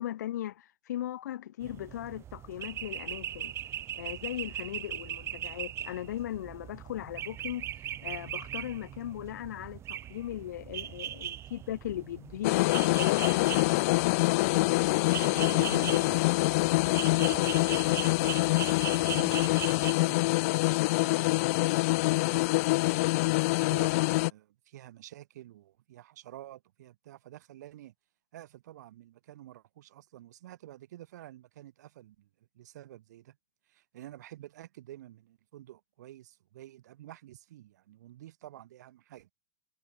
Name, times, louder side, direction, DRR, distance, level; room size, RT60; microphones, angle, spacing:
voice 1, 0.0-3.5 3.9-7.6 8.0-13.5, left 12 dB, 70° left, 1.2 m, -38 dB
sound 1, 1.6-19.9, right 11 dB, 25° right, 0.8 m, -40 dB
sound 2, 12.4-24.3, left 23 dB, 55° left, 0.6 m, -25 dB
voice 2, 15.3-20.4 21.0-27.9 28.3-32.3 32.5-33.4 33.7-39.3, right 13 dB, 70° right, 7.0 m, -49 dB
hypercardioid pair, 115°, 10 cm